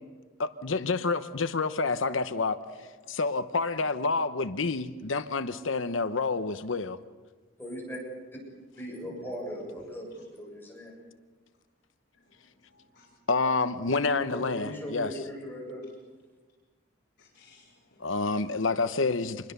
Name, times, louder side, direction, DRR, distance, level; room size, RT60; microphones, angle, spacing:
voice 1, 0.4-2.6 3.1-7.0 13.3-15.1 18.0-19.5, left 3 dB, 90° left, 11 dB, 1.0 m, -28 dB
voice 2, 7.6-8.0 8.8-10.9 14.0-15.8, equal, 10° left, -2 dB, 7.4 m, -38 dB
voice 3, 12.1-13.1 17.2-18.1, left 4 dB, 60° left, -4 dB, 4.6 m, -60 dB
27.0 x 21.5 x 6.9 m, 1.4 s
head